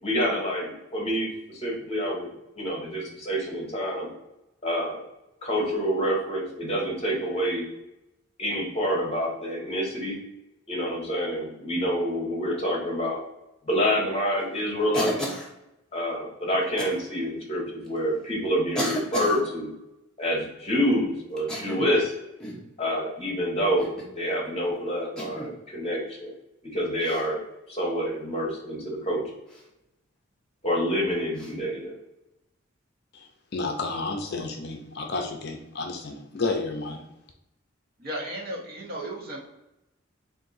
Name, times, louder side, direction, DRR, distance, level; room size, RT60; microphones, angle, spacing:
voice 1, 0.0-2.3 2.5-4.1 4.6-5.0 5.4-7.7 8.4-10.2 10.7-13.2 13.6-15.2 15.9-19.7 20.2-22.1 22.8-26.3 26.7-27.4 27.7-29.2 30.6-31.9, equal, 30° left, -1 dB, 1.0 m, -27 dB
Cough, 14.9-15.5 16.8-17.0 17.9-18.0 18.7-19.4 21.4-22.0 22.4-22.7 23.8-24.1 25.2-25.5 27.0-27.3 29.5-29.6 31.3-31.5, equal, 5° left, 0.7 m, -33 dB
voice 2, 33.1-37.0, left 3 dB, 50° left, 3 dB, 0.5 m, -31 dB
voice 3, 38.0-39.4, right 1 dB, 45° right, -1 dB, 0.9 m, -34 dB
3.6 x 2.6 x 3.9 m, 0.92 s
head